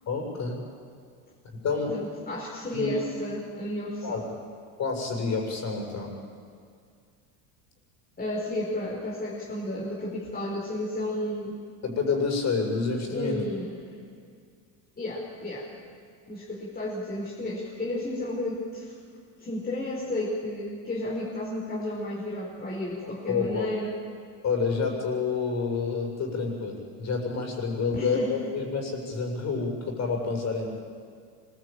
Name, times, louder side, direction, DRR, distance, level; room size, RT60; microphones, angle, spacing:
voice 1, 0.1-0.6 1.5-2.0 2.7-3.0 4.0-4.2 4.8-6.1 11.8-13.4 23.0-23.7 24.4-30.7, left 4 dB, 35° left, 2 dB, 7.0 m, -28 dB
voice 2, 1.9-4.3 8.2-11.6 13.1-14.0 15.0-15.7 16.3-18.9 19.4-24.0 27.9-28.5, left 1 dB, 20° left, -4 dB, 4.7 m, -32 dB
25.5 x 22.5 x 9.0 m, 2.2 s
supercardioid pair, 135°, 47 cm